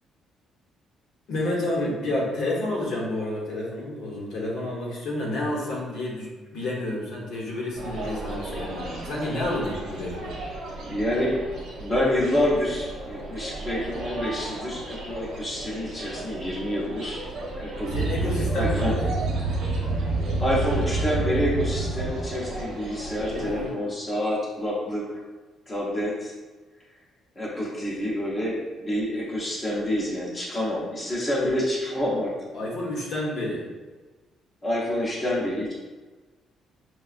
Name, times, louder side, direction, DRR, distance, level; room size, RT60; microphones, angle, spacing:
voice 1, 1.3-10.4 17.9-19.1 23.3-23.8 32.5-33.7, left 1 dB, 70° left, -3 dB, 0.9 m, -30 dB
sound 1, 7.7-23.7, right 2 dB, 90° right, 0.9 m, -37 dB
voice 2, 10.8-11.5 11.8-17.2 17.6-18.0 18.2-19.0 20.4-25.2 25.7-26.3 27.4-32.3 34.6-35.7, left 1 dB, 20° left, -5 dB, 0.7 m, -27 dB
sound 2, 17.9-22.5, right 3 dB, 55° right, 0.4 m, -27 dB
4.7 x 2.2 x 2.4 m, 1.3 s
cardioid pair, 150°, 0 cm